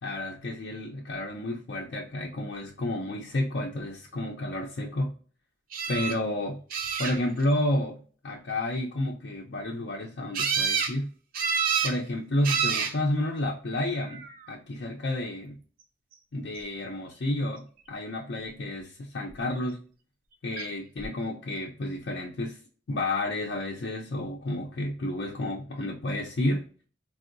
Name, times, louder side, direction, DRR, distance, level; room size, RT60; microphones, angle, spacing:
voice 1, 0.0-5.2 5.9-6.6 7.0-11.1 11.8-15.6 16.3-19.8 20.4-22.6 22.9-26.7, left 1 dB, 65° left, 0.5 m, -31 dB
sound 1, 5.7-6.2 6.7-7.4 10.3-10.9 11.3-12.0 12.4-12.9 13.9-14.3 20.6-20.7 21.0-21.1, right 6 dB, 50° right, 0.5 m, -28 dB
4.5 x 2.0 x 2.5 m
head